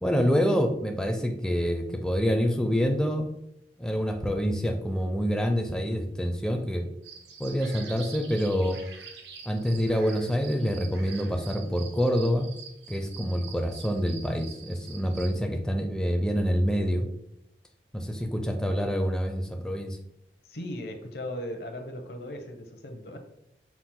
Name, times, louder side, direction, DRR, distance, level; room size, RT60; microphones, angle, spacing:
voice 1, 0.0-3.3 3.8-6.8 7.4-8.8 9.5-12.5 12.9-17.0 17.9-20.0, equal, 5° left, 4 dB, 0.4 m, -26 dB
sound 1, 7.0-15.3, right 6 dB, 75° right, 0.7 m, -46 dB
voice 2, 20.5-23.2, left 1 dB, 65° left, 5 dB, 0.7 m, -37 dB
5.8 x 2.4 x 3.7 m, 0.79 s
head